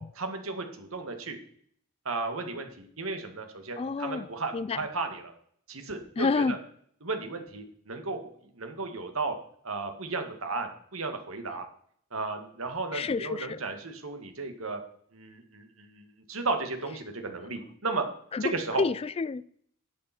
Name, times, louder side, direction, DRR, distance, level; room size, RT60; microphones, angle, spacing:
voice 1, 0.0-1.4 2.1-5.3 5.7-6.6 7.0-9.3 9.6-11.7 12.1-14.8 15.1-18.0 18.4-18.8, right 3 dB, 80° right, 1.9 m, -34 dB
voice 2, 3.8-4.3 4.5-4.8 6.2-6.6 12.9-13.6 18.3-18.4 18.8-19.6, left 4 dB, 30° left, 0.3 m, -29 dB
11.5 x 8.7 x 4.4 m
head